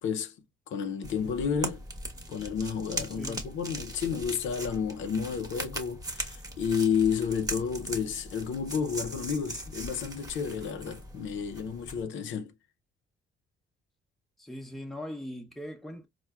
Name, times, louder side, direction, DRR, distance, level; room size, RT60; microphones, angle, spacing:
voice 1, 0.0-0.3 0.7-1.8 2.3-12.5, left 6 dB, 75° left, 0.5 m, -31 dB
sound 1, 1.0-12.0, right 1 dB, 20° right, 1.0 m, -40 dB
voice 2, 14.4-16.1, left 1 dB, ahead, 0.7 m, -40 dB
4.4 x 2.1 x 2.2 m
cardioid pair, 90°, 20 cm